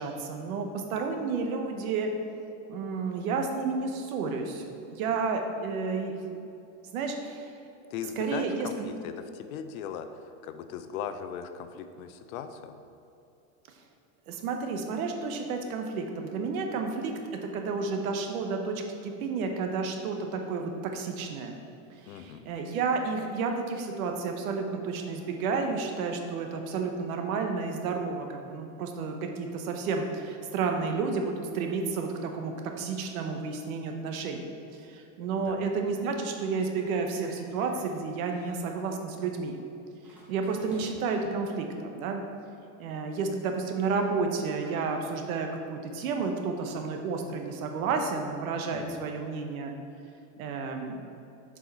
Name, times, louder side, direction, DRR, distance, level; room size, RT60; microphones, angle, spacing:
voice 1, 0.0-2.1 2.7-6.4 6.9-7.5 8.2-8.9 14.3-17.1 17.4-21.5 22.0-34.4 34.8-39.6 40.3-42.2 42.8-49.7 50.4-51.0, right 4 dB, 75° right, 4 dB, 1.1 m, -31 dB
voice 2, 7.9-12.8 22.1-22.5 35.3-35.6 48.7-49.0, left 8 dB, 75° left, 9 dB, 0.7 m, -39 dB
sound 1, 36.8-38.0 38.2-38.6 40.0-41.2, equal, 5° right, 0.9 m, -53 dB
7.5 x 4.7 x 4.1 m, 2.8 s
supercardioid pair, 170°, 43 cm